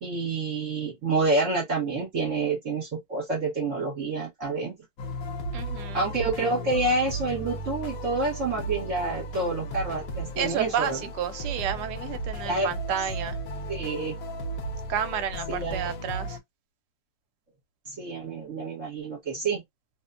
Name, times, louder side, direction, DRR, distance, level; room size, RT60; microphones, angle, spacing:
voice 1, 0.0-4.7 5.9-11.0 12.4-12.7 13.7-14.1 15.5-15.9 17.9-19.6, right 3 dB, 50° right, 1.2 m, -28 dB
sound 1, 5.0-16.4, right 1 dB, 65° left, 0.9 m, -35 dB
voice 2, 5.5-6.1 10.4-13.4 14.9-16.4, right 9 dB, 75° right, 1.1 m, -31 dB
2.9 x 2.1 x 2.3 m
omnidirectional pair, 1.9 m